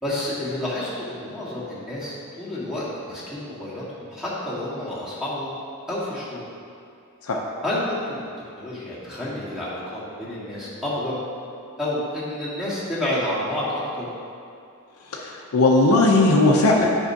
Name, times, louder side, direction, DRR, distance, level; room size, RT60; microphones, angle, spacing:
voice 1, 0.0-5.6 5.9-6.4 7.6-8.3 8.5-11.2 11.8-14.1, left 1 dB, 5° right, -9 dB, 1.5 m, -29 dB
voice 2, 15.0-16.9, left 2 dB, 80° left, -2 dB, 0.6 m, -18 dB
8.7 x 5.4 x 2.7 m, 2.5 s
head